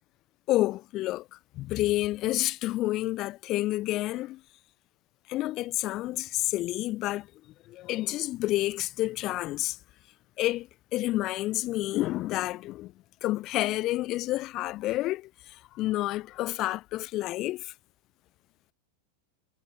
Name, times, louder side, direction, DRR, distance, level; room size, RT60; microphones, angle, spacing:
voice 1, 0.5-4.4 5.3-7.3 7.7-9.8 10.4-12.9 13.2-17.7, left 16 dB, 35° left, 0.3 m, -29 dB
figure-of-eight pair, 90°, 0 cm